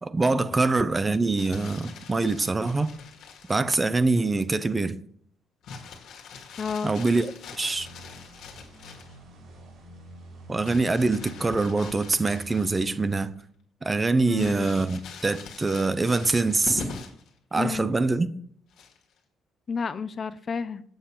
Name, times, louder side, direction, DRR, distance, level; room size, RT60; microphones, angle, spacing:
voice 1, 0.0-2.9 3.5-5.0 6.8-7.9 10.5-13.3 13.8-16.8 17.5-18.3, right 3 dB, 20° right, 0.6 m, -24 dB
Crumpling crinkling, 1.1-3.7 5.6-9.2 10.6-13.0 13.4-13.5 14.3-17.3 18.7-19.2, left 4 dB, 75° left, 1.8 m, -42 dB
voice 2, 6.6-7.0 14.3-14.7 17.6-17.9 19.7-20.8, left 5 dB, 35° left, 0.4 m, -30 dB
sound 1, 7.7-13.3, right 1 dB, 65° right, 4.4 m, -47 dB
7.9 x 6.8 x 5.8 m
cardioid pair, 120°, 0 cm